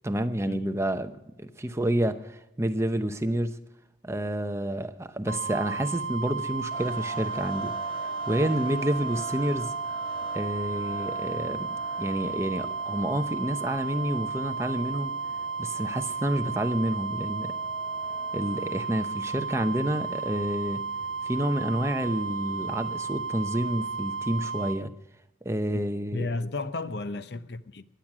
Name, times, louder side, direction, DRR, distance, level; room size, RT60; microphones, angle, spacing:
voice 1, 0.0-1.1 1.4-3.6 4.0-7.7 8.0-9.7 10.3-11.7 12.0-15.1 15.6-17.5 18.3-20.8 21.2-24.9 25.4-26.3, right 1 dB, 15° right, 0.8 m, -29 dB
sound 1, 5.3-24.8, right 5 dB, 80° right, 1.2 m, -33 dB
sound 2, 6.2-24.8, equal, 30° right, 6.0 m, -55 dB
sound 3, 6.7-19.1, right 1 dB, 30° left, 1.6 m, -43 dB
voice 2, 26.1-27.9, left 2 dB, 65° left, 0.7 m, -33 dB
22.0 x 9.0 x 6.1 m
head